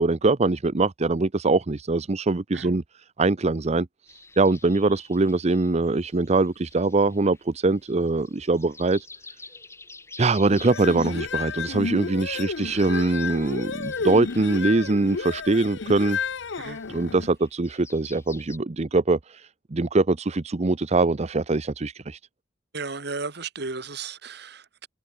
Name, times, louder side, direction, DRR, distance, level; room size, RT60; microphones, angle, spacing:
voice 1, 0.0-2.8 3.2-9.1 10.2-16.2 16.9-22.2, right 3 dB, 35° right, 0.7 m, -23 dB
sound 1, 4.1-18.6, left 3 dB, 15° left, 5.5 m, -50 dB
sound 2, 10.5-17.3, left 5 dB, 90° left, 0.8 m, -32 dB
voice 2, 22.7-24.9, right 4 dB, 65° right, 2.2 m, -34 dB
head